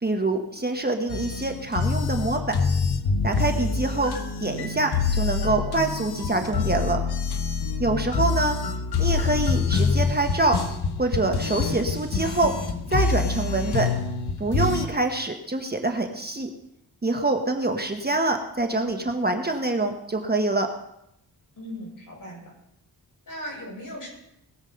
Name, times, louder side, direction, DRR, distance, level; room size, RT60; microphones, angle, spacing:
voice 1, 0.0-2.6 3.2-4.1 4.4-7.0 7.8-8.6 9.0-10.6 11.0-12.5 12.9-13.9 14.4-16.5 17.0-20.7, right 2 dB, 25° right, 4 dB, 1.3 m, -25 dB
sound 1, 1.1-14.9, left 4 dB, 75° left, 1.1 m, -26 dB
voice 2, 21.6-22.5 23.3-24.1, equal, 55° left, -2 dB, 6.4 m, -37 dB
20.5 x 7.5 x 5.3 m, 0.80 s
wide cardioid pair, 100°, 39 cm